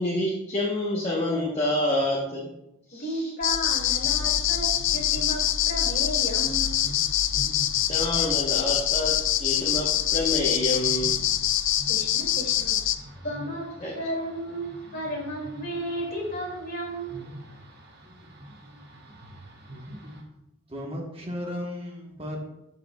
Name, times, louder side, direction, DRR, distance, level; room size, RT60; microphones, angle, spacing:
voice 1, 0.0-2.5 2.9-3.3 7.9-11.2 13.8-13.9, left 1 dB, 30° left, -4 dB, 1.0 m, -28 dB
voice 2, 2.9-4.7 4.9-6.8 11.9-12.8 13.2-13.7 13.9-17.2, equal, 45° left, -2 dB, 2.2 m, -33 dB
sound 1, 3.4-12.9, left 11 dB, 65° left, 0.4 m, -25 dB
sound 2, 3.7-20.2, equal, 50° right, 1.5 m, -46 dB
voice 3, 20.7-22.4, left 1 dB, 25° right, -1 dB, 1.1 m, -34 dB
12.0 x 4.9 x 2.3 m, 0.85 s
head